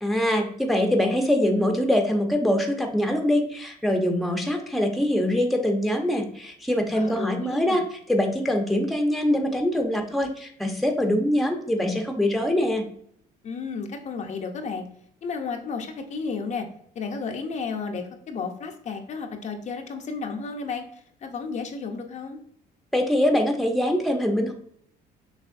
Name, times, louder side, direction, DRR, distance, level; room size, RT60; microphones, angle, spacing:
voice 1, 0.0-12.9 22.9-24.5, left 1 dB, ahead, 3 dB, 0.8 m, -23 dB
voice 2, 6.9-7.8 13.4-14.8 15.2-16.7 16.9-22.4, left 5 dB, 45° left, 4 dB, 0.7 m, -33 dB
6.5 x 3.1 x 2.5 m, 0.65 s
cardioid pair, 110°, 17 cm